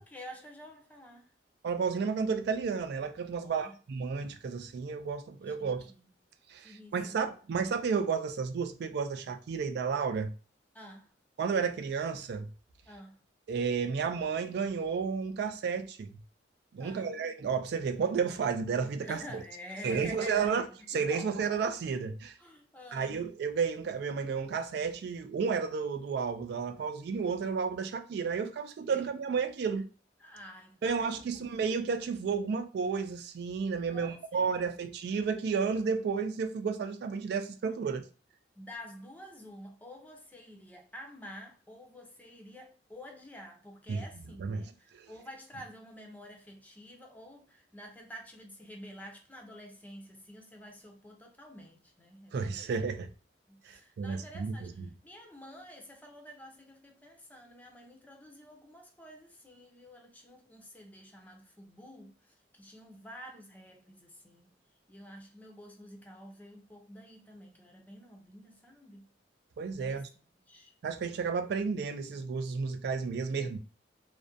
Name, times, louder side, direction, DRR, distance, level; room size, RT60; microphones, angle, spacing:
voice 1, 0.0-1.3 3.4-3.8 5.5-6.1 6.6-7.4 10.7-11.1 12.8-13.3 16.8-17.2 19.0-21.4 22.4-23.3 28.9-29.0 30.2-31.3 33.9-34.8 38.5-52.7 53.5-64.5 64.9-69.1 69.8-70.7, equal, 10° left, 0.5 m, -49 dB
voice 2, 1.6-5.8 6.5-10.3 11.4-12.5 13.5-16.1 16.7-19.2 19.8-22.3 22.9-29.9 30.8-38.0 43.9-44.0 44.4-44.7 52.3-53.1 53.7-54.5 69.6-70.1 70.8-73.6, right 5 dB, 65° right, 0.3 m, -32 dB
2.5 x 2.1 x 2.5 m
head